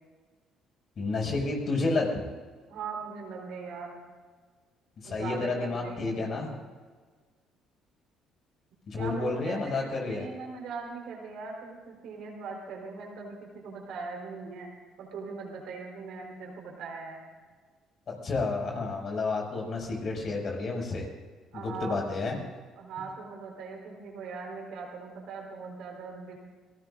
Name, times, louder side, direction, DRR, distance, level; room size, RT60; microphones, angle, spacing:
voice 1, 1.0-2.1 5.0-6.5 8.9-10.3 18.1-21.1 21.5-22.4, left 3 dB, 50° left, 0 dB, 6.0 m, -30 dB
voice 2, 2.7-4.0 5.0-6.6 8.9-14.7 15.0-17.2 21.5-22.2 22.8-26.4, right 4 dB, 65° right, 0 dB, 3.9 m, -40 dB
26.5 x 19.0 x 2.6 m, 1.5 s
hypercardioid pair, 55°, 0 cm